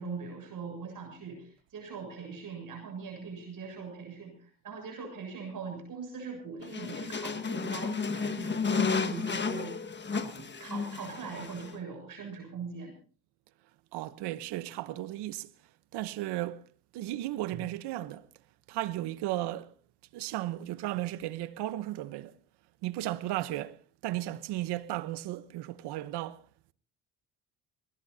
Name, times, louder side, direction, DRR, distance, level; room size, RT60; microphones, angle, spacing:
voice 1, 0.0-9.8 10.1-12.9 17.5-17.6, right 5 dB, 55° right, 7.4 m, -41 dB
sound 1, 6.6-11.7, left 5 dB, 25° left, 1.5 m, -32 dB
voice 2, 13.9-15.5 15.9-16.7 16.9-18.3 18.7-19.7 20.1-22.3 22.8-26.4, right 15 dB, 85° right, 1.1 m, -35 dB
22.5 x 20.0 x 2.8 m
cardioid pair, 80°, 39 cm